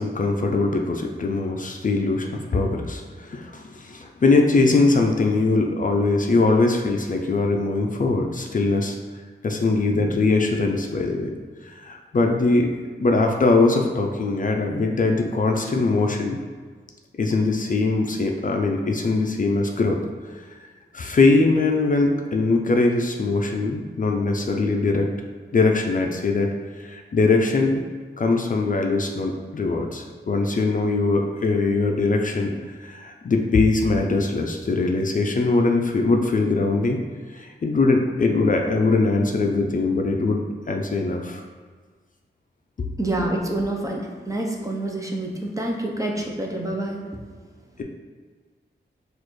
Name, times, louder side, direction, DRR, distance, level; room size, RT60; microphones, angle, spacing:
voice 1, 0.0-9.0 9.4-11.3 11.6-12.8 13.0-16.4 17.2-20.0 20.9-25.1 25.5-26.5 26.8-27.8 28.2-32.5 32.8-37.0 37.3-41.4, left 3 dB, 45° left, 2 dB, 0.4 m, -21 dB
voice 2, 43.0-47.0, right 1 dB, 15° right, 0 dB, 0.6 m, -27 dB
6.2 x 2.4 x 3.1 m, 1.5 s
wide cardioid pair, 100°, 19 cm